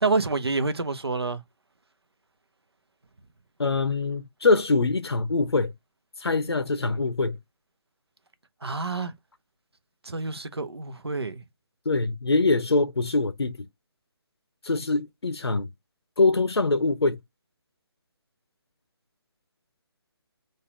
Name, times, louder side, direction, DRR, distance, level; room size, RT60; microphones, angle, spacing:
voice 1, 0.0-1.4 8.6-9.1 10.0-11.4, right 3 dB, 75° right, 0.9 m, -27 dB
voice 2, 3.6-5.7 6.2-7.4 11.9-13.6 14.6-15.7 16.2-17.2, left 3 dB, 75° left, 0.6 m, -23 dB
4.2 x 2.5 x 4.6 m
figure-of-eight pair, 150°, 14 cm